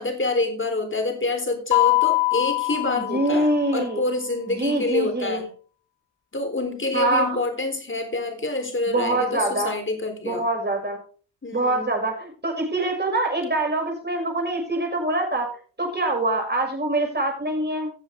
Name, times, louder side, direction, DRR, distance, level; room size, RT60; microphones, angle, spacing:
voice 1, 0.0-5.5 6.3-10.4 11.4-11.9, left 2 dB, 30° left, 6 dB, 4.1 m, -27 dB
Mallet percussion, 1.7-3.8, left 23 dB, 70° left, 0.5 m, -23 dB
voice 2, 3.0-4.0 4.5-5.4 6.9-7.3 8.9-9.7 10.2-11.0 11.5-15.5 15.8-17.9, right 2 dB, 25° right, 2 dB, 6.1 m, -24 dB
16.5 x 7.2 x 3.7 m, 0.40 s
supercardioid pair, 55°, 43 cm